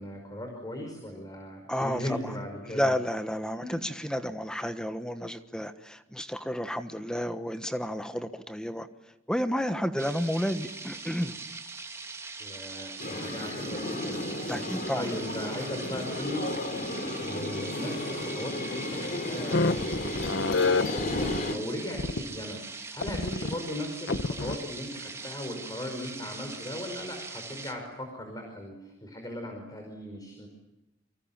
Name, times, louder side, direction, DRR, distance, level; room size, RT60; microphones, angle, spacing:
voice 1, 0.0-2.9 3.6-4.1 12.4-14.2 14.5-14.7 15.0-16.5 17.2-20.2 20.8-22.6 22.9-30.5, left 1 dB, 20° left, 2 dB, 5.3 m, -38 dB
voice 2, 1.7-2.3 2.7-8.9 9.3-11.4 14.5-15.1, equal, 5° left, 8 dB, 1.3 m, -31 dB
sound 1, 10.0-27.7, right 4 dB, 15° right, 2.9 m, -42 dB
sound 2, 13.0-21.5, left 1 dB, 45° left, 3.2 m, -34 dB
sound 3, 19.5-21.4 21.9-22.2 23.0-23.5 24.1-24.6, left 3 dB, 65° left, 0.9 m, -27 dB
30.0 x 25.0 x 7.4 m, 0.94 s
head